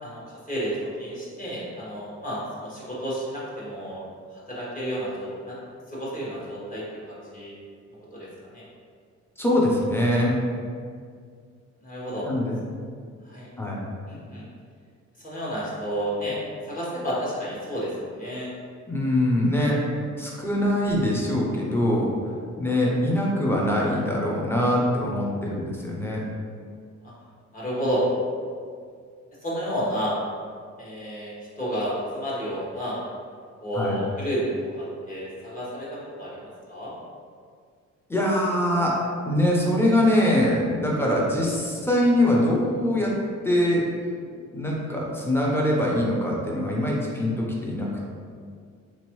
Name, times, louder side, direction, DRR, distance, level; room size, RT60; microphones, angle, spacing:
voice 1, 0.0-4.0 4.3-5.6 5.9-7.5 8.1-8.6 11.8-12.3 13.2-13.5 14.1-14.4 15.2-16.4 16.6-18.5 27.0-27.1 27.5-28.0 29.4-30.1 30.8-33.0 33.6-36.9, equal, 25° left, -8 dB, 1.4 m, -31 dB
voice 2, 9.4-10.4 12.3-12.6 13.6-13.8 18.9-19.8 20.2-22.1 22.6-26.2 33.7-34.0 38.1-38.9 39.2-43.1 43.4-43.8 44.5-47.9, left 1 dB, 10° left, -4 dB, 0.8 m, -23 dB
3.6 x 2.9 x 3.0 m, 2.1 s
cardioid pair, 90°, 30 cm